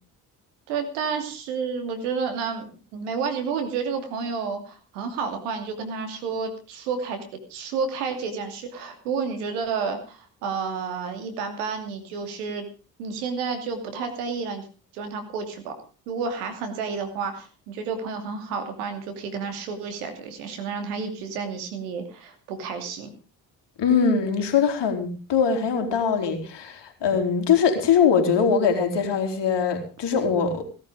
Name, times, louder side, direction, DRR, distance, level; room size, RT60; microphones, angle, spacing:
voice 1, 0.7-7.2 7.5-12.7 13.0-14.6 14.9-15.8 16.1-23.1, right 5 dB, 85° right, 6 dB, 2.8 m, -30 dB
voice 2, 23.8-30.6, left 6 dB, 65° left, 6 dB, 3.7 m, -22 dB
17.5 x 11.5 x 5.1 m, 0.36 s
hypercardioid pair, 45°, 45 cm